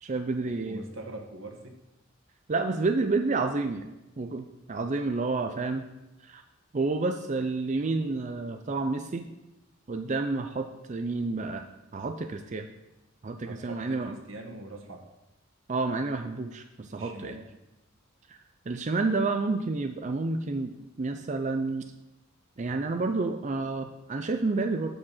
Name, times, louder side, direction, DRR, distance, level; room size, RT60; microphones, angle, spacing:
voice 1, 0.0-0.8 2.5-3.9 4.2-5.9 6.2-6.4 6.7-9.3 9.9-11.6 11.9-12.7 13.2-14.2 15.7-17.4 18.3-18.4 18.7-20.7 21.0-21.9 22.6-24.9, right 3 dB, 35° right, 6 dB, 0.5 m, -29 dB
voice 2, 0.6-1.8 13.4-15.0 16.9-17.4, right 2 dB, 80° right, 3 dB, 1.5 m, -43 dB
8.4 x 5.0 x 7.1 m, 0.96 s
head